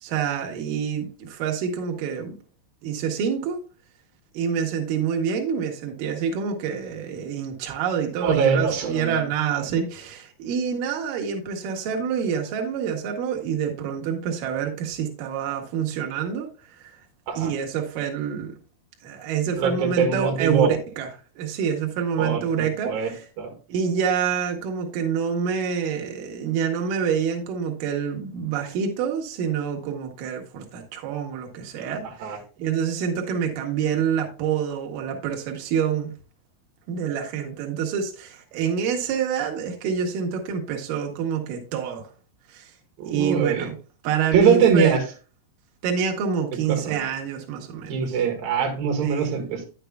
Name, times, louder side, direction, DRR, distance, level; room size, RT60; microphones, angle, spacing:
voice 1, 0.0-2.4 2.8-3.6 4.3-16.5 16.8-16.9 17.4-18.5 19.0-23.3 23.7-36.1 36.9-42.1 42.5-42.7 43.0-43.8 44.0-45.0 45.8-48.1 49.0-49.3, right 7 dB, 90° right, 1.9 m, -27 dB
voice 2, 8.2-9.3 17.3-17.5 19.6-20.7 22.2-23.1 23.4-23.5 32.2-32.4 43.0-43.7 44.3-45.0 46.7-47.0 47.9-49.7, right 6 dB, 60° right, 2.8 m, -22 dB
10.0 x 8.1 x 2.3 m
omnidirectional pair, 5.6 m